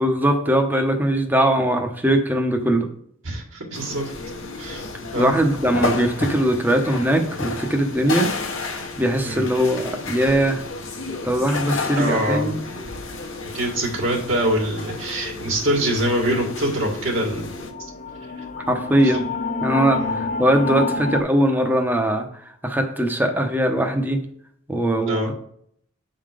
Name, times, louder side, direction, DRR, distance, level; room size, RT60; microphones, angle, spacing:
voice 1, 0.0-2.9 5.1-8.3 8.6-10.6 11.2-12.6 18.7-19.3 19.6-24.2 24.7-25.3, right 1 dB, 10° right, 4 dB, 0.9 m, -21 dB
voice 2, 3.3-4.1 4.6-4.8 5.1-5.3 9.2-9.5 12.0-12.5 13.5-17.5 19.9-20.2 25.1-25.3, right 1 dB, 65° right, -2 dB, 1.9 m, -24 dB
sound 1, 3.7-17.7, left 3 dB, 65° left, 1.2 m, -32 dB
sound 2, 16.8-21.2, left 4 dB, 35° left, 0.5 m, -28 dB
8.4 x 3.9 x 5.0 m, 0.65 s
head